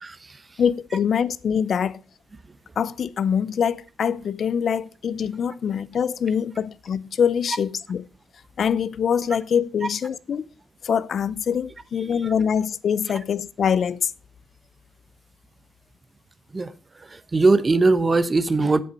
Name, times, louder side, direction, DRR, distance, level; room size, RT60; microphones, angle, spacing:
voice 1, 0.0-0.6 2.5-2.6 9.8-9.9 12.0-12.3 16.5-18.8, right 3 dB, 25° right, 0.9 m, -22 dB
voice 2, 0.6-2.0 2.8-8.0 8.6-10.4 10.8-14.1, left 7 dB, 55° left, 0.6 m, -24 dB
8.2 x 7.9 x 5.5 m
cardioid pair, 90°, 0 cm